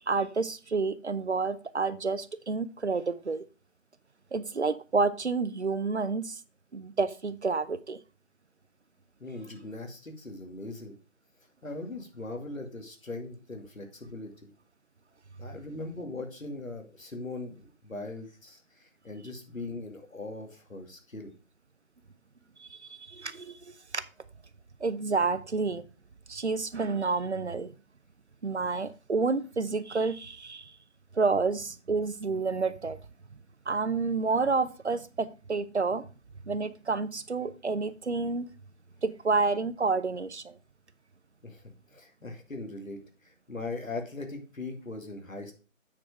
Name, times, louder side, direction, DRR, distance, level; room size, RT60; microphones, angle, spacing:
voice 1, 0.0-3.4 4.3-6.4 6.7-8.0 22.6-24.0 24.8-25.9 26.3-27.7 28.4-30.8 31.1-33.0 33.7-36.0 36.4-38.5 39.0-40.6, right 4 dB, 55° right, 14 dB, 0.7 m, -29 dB
voice 2, 9.2-11.0 11.6-14.5 15.4-21.3 41.4-45.5, left 2 dB, 80° left, 5 dB, 2.4 m, -40 dB
8.8 x 4.7 x 4.8 m, 0.34 s
figure-of-eight pair, 170°, 40 cm